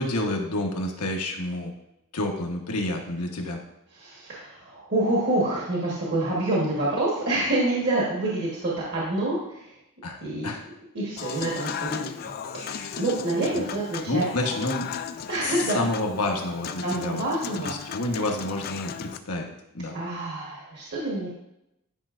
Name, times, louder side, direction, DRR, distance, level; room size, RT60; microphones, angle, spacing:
voice 1, 0.0-1.7 2.1-3.6 10.0-10.2 10.4-10.6 13.5-13.6 14.1-14.9 15.4-17.2 17.6-20.0, left 1 dB, 85° left, 2 dB, 1.2 m, -29 dB
voice 2, 3.9-9.7 10.2-10.5 10.9-14.3 15.3-15.8 16.8-17.7 19.9-21.3, right 2 dB, 50° right, -5 dB, 1.4 m, -27 dB
Human voice / Acoustic guitar / Piano, 11.2-19.2, left 7 dB, 45° left, 0.3 m, -36 dB
10.5 x 5.3 x 2.5 m, 0.86 s
head